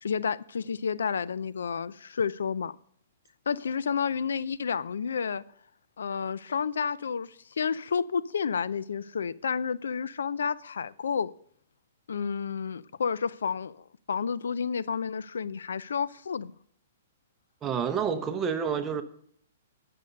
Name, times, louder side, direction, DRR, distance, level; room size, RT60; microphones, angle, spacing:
voice 1, 0.0-2.8 3.5-5.4 6.0-11.3 12.1-16.5, left 6 dB, 90° left, 0.4 m, -30 dB
voice 2, 17.6-19.0, right 7 dB, 15° right, 0.9 m, -28 dB
10.5 x 6.7 x 6.5 m
hypercardioid pair, 150°, 0 cm